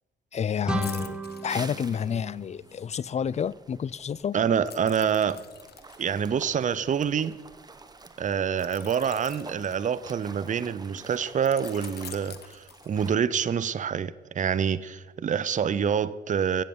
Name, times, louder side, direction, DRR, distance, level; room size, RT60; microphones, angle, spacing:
voice 1, 0.3-4.4, left 7 dB, 35° left, 0.4 m, -30 dB
sound 1, 0.6-3.4, right 2 dB, 5° right, 1.5 m, -35 dB
sound 2, 0.8-2.4 4.7-7.4 8.6-10.4 11.5-13.3 13.7-13.9, left 8 dB, 55° left, 1.2 m, -46 dB
sound 3, 1.5-13.2, right 3 dB, 20° right, 1.2 m, -48 dB
voice 2, 4.3-5.4 6.0-7.4 8.2-16.6, right 7 dB, 40° right, 0.6 m, -26 dB
16.5 x 6.9 x 9.2 m
cardioid pair, 90°, 20 cm